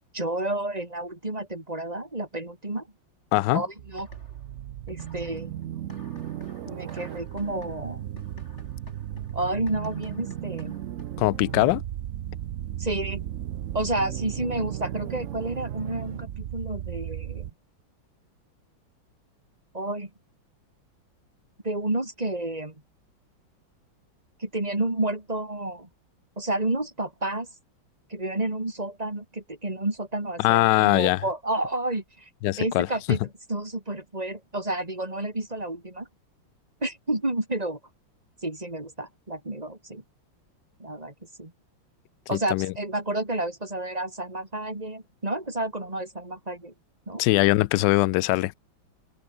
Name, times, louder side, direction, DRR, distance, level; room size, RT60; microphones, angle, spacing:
voice 1, 0.1-2.9 3.5-4.1 4.9-5.5 6.7-8.0 9.3-10.7 12.8-13.2 13.7-17.5 19.7-20.1 21.6-22.7 24.4-25.9 26.4-27.5 28.1-32.3 32.6-36.1 36.8-37.8 38.4-40.0 40.8-41.1 41.4-41.5 42.3-46.7 47.1-47.2, right 1 dB, 20° right, 3.3 m, -30 dB
voice 2, 3.3-3.6 11.2-11.8 30.4-31.2 32.4-33.2 42.3-42.7 47.2-48.5, left 19 dB, 75° left, 1.1 m, -22 dB
sound 1, 3.8-17.5, right 11 dB, 75° right, 0.7 m, -35 dB
sound 2, 4.0-4.6 4.9-11.3, left 1 dB, 35° left, 7.0 m, -51 dB
open air
omnidirectional pair, 2.2 m